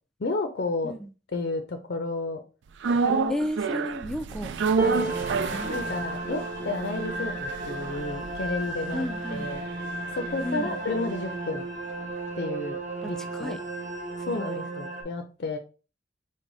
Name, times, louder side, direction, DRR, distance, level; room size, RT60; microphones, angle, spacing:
voice 1, 0.2-0.9 1.3-2.4 3.0-3.3 4.8-5.1 5.7-9.6 10.1-11.6 12.4-12.8 13.1-13.6 14.3-15.6, left 2 dB, 60° left, 6 dB, 0.5 m, -31 dB
sound 1, 2.8-11.1 11.4-11.5, right 5 dB, 75° right, 0.4 m, -31 dB
voice 2, 3.3-5.2 5.5-6.1 6.6-6.7 8.9-9.5 10.4-10.8 13.0-13.6 14.3-14.6, equal, 5° left, 8 dB, 0.3 m, -34 dB
sound 2, 4.8-10.9 11.5-11.7 12.0-12.8 13.7-13.8, right 3 dB, 20° right, 1.1 m, -36 dB
sound 3, 5.0-15.0, right 2 dB, 40° right, 1.1 m, -35 dB
4.7 x 2.1 x 3.9 m, 0.34 s
head